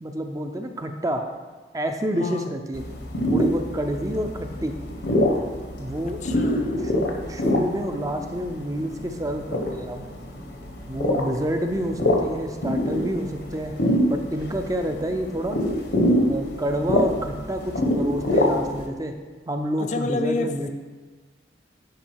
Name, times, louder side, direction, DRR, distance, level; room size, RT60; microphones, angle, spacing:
voice 1, 0.0-1.3 1.7-2.8 3.3-4.8 5.8-6.2 6.8-10.1 10.9-13.7 14.1-15.6 16.3-19.1 19.5-20.7, right 1 dB, 20° right, 5 dB, 0.5 m, -28 dB
sound 1, 2.7-18.9, left 1 dB, 70° left, 1.0 m, -25 dB
voice 2, 6.0-6.8 19.8-20.7, left 2 dB, 40° left, 7 dB, 0.4 m, -29 dB
10.5 x 3.7 x 4.7 m, 1.3 s
head